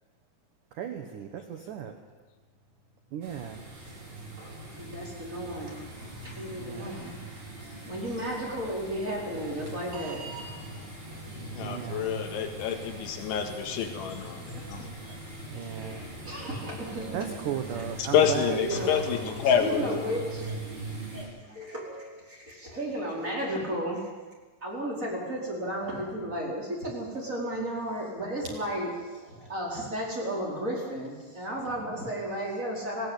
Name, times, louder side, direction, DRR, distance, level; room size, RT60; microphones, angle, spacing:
voice 1, 0.7-2.0 3.1-3.6 6.6-7.0 11.6-12.2 15.5-16.0 17.1-18.6, right 9 dB, 85° right, 6 dB, 1.8 m, -36 dB
sound 1, 3.2-21.2, right 1 dB, 60° right, 7.2 m, -41 dB
voice 2, 4.8-10.8 14.1-14.2 14.5-15.2 15.6-15.7 16.2-17.9 18.3-19.2 19.6-20.6 20.9-24.1 24.6-33.1, right 1 dB, 15° right, -3 dB, 4.7 m, -34 dB
voice 3, 11.5-14.9 18.0-20.0, left 8 dB, 85° left, 5 dB, 4.1 m, -28 dB
19.5 x 16.0 x 8.3 m, 1.3 s
omnidirectional pair, 5.3 m